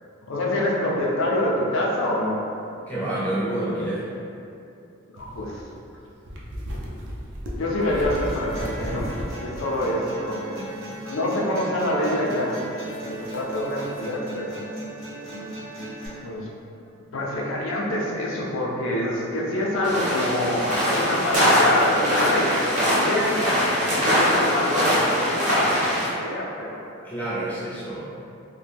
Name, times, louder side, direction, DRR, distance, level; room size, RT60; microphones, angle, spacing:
voice 1, 0.3-2.4 5.1-5.6 7.6-10.6 11.0-12.6 13.0-14.6 16.2-16.5 17.1-23.5 23.9-26.8, left 1 dB, 75° left, -3 dB, 0.5 m, -26 dB
voice 2, 2.9-4.1 27.0-28.1, right 1 dB, 10° left, -8 dB, 0.4 m, -28 dB
sound 1, 5.2-9.5 9.7-9.8 10.7-11.3 12.4-12.6 12.9-14.1, equal, 60° right, 0.4 m, -35 dB
sound 2, 8.1-16.1, right 1 dB, 80° right, 0.8 m, -37 dB
sound 3, 19.8-26.1, equal, 40° right, 0.8 m, -22 dB
2.4 x 2.2 x 3.3 m, 2.6 s
head